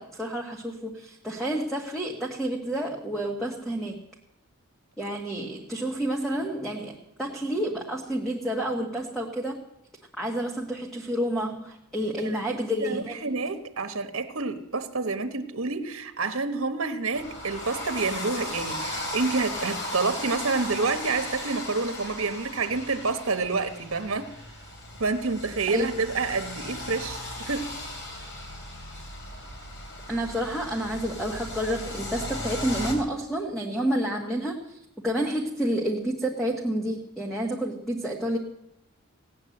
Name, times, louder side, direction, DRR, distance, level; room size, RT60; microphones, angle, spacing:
voice 1, 0.0-4.0 5.0-9.6 10.2-13.2 25.7-25.9 30.1-34.8 35.0-38.4, right 1 dB, ahead, 1.5 m, -29 dB
voice 2, 12.2-24.3 25.0-27.7, right 4 dB, 75° right, 1.2 m, -28 dB
sound 1, 17.1-32.9, left 1 dB, 55° left, 3.7 m, -36 dB
17.0 x 9.5 x 7.7 m
head